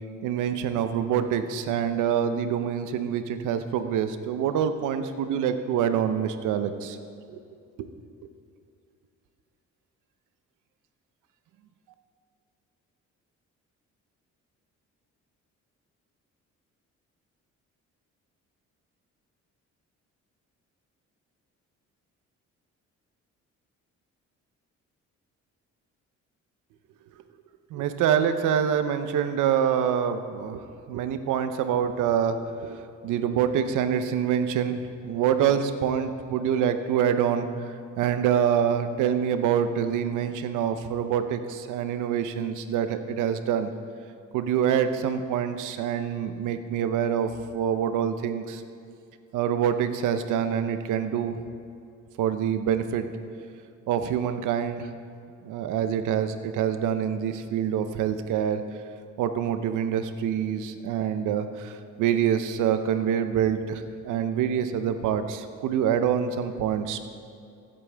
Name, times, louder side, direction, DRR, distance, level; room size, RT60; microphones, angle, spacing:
voice 1, 0.2-7.0 7.3-7.4 7.8-7.9 27.7-30.6 30.9-43.7 44.3-48.6 49.3-51.4 52.2-53.1 53.9-54.9 55.4-58.6 59.2-67.1, right 8 dB, 90° right, 9 dB, 0.8 m, -26 dB
15.5 x 8.7 x 3.5 m, 2.4 s
cardioid pair, 90°, 30 cm